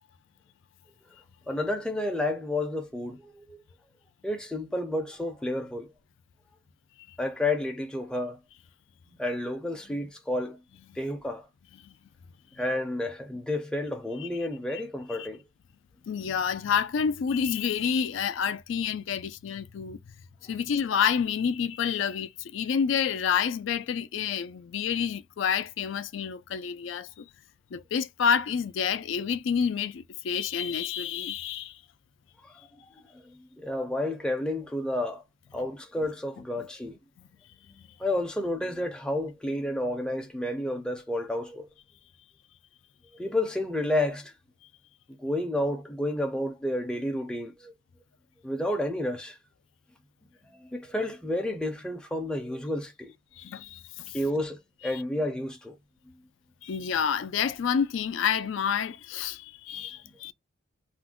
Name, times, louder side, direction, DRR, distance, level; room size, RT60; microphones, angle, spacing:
voice 1, 1.5-3.6 4.2-5.9 7.2-8.4 9.2-10.6 11.0-11.5 12.6-15.4 32.4-32.8 33.1-35.2 35.5-37.0 38.0-41.7 43.1-44.3 45.1-47.7 48.4-49.4 50.6-53.1 54.1-55.7, left 1 dB, 5° left, 0.4 m, -31 dB
voice 2, 16.1-20.0 20.4-27.3 27.7-31.8 37.7-37.9 53.4-54.1 54.9-55.0 56.6-60.3, left 7 dB, 75° left, 0.3 m, -29 dB
2.5 x 2.1 x 3.6 m
head